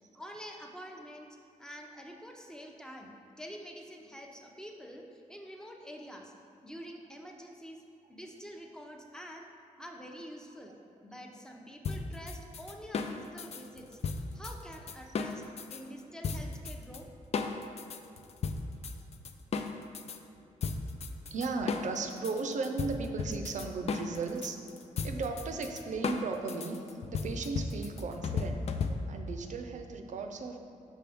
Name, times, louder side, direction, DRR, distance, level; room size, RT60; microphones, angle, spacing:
voice 1, 0.1-6.3 6.6-7.8 8.1-9.5 9.8-15.4 15.7-17.1, equal, 5° left, 1 dB, 0.7 m, -47 dB
sound 1, 11.8-15.8 16.2-17.0 17.3-20.2 20.6-29.3, left 4 dB, 50° left, 0.4 m, -35 dB
voice 2, 21.2-24.6 25.0-26.8 27.1-28.6 29.1-30.6, right 4 dB, 65° right, 5 dB, 0.6 m, -36 dB
6.1 x 5.8 x 3.5 m, 2.7 s
cardioid pair, 95°, 14 cm